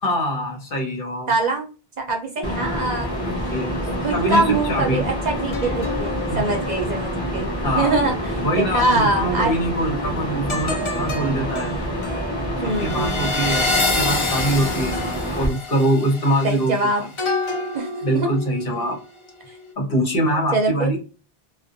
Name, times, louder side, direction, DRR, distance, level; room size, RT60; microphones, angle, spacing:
voice 1, 0.0-1.3 3.5-5.1 6.3-6.4 7.6-7.9 8.4-11.7 12.6-15.0 15.3-17.1 18.0-19.0 19.8-21.0, right 1 dB, 60° left, 1 dB, 1.2 m, -23 dB
voice 2, 1.3-1.7 2.0-3.1 4.0-9.6 12.6-13.2 16.4-17.0 17.7-18.3 20.5-20.9, right 2 dB, 50° right, 2 dB, 0.7 m, -23 dB
sound 1, 2.4-15.5, equal, 25° left, 0.8 m, -27 dB
sound 2, 5.5-9.2 10.5-19.0 19.4-19.7, left 3 dB, 40° left, 0.4 m, -29 dB
2.5 x 2.2 x 2.5 m, 0.34 s
omnidirectional pair, 1.0 m